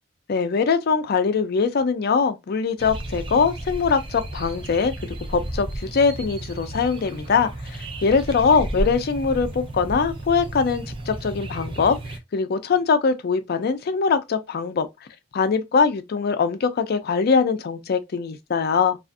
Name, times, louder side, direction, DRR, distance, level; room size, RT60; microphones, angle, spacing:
voice 1, 0.3-14.9 15.3-19.0, left 5 dB, 55° left, 0.4 m, -22 dB
sound 1, 2.8-12.2, right 1 dB, 25° right, 0.4 m, -33 dB
2.4 x 2.3 x 2.5 m
head